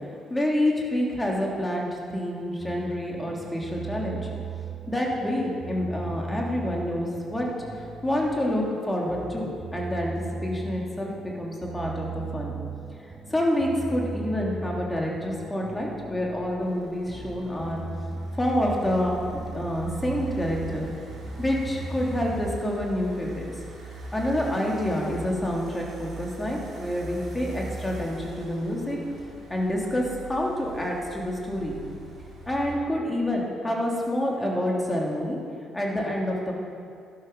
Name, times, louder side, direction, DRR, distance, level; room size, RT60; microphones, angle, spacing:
voice 1, 0.3-4.3 4.9-7.5 7.8-12.5 13.3-17.8 18.3-20.9 21.4-23.5 24.1-29.0 29.5-31.7 32.5-35.4 35.7-36.5, left 1 dB, 15° left, -2 dB, 3.3 m, -28 dB
sound 1, 2.6-22.4, right 3 dB, 20° right, 2.3 m, -38 dB
sound 2, 16.6-32.7, right 2 dB, 50° right, 3.2 m, -41 dB
12.0 x 11.5 x 5.7 m, 2.3 s
figure-of-eight pair, 45°, 0 cm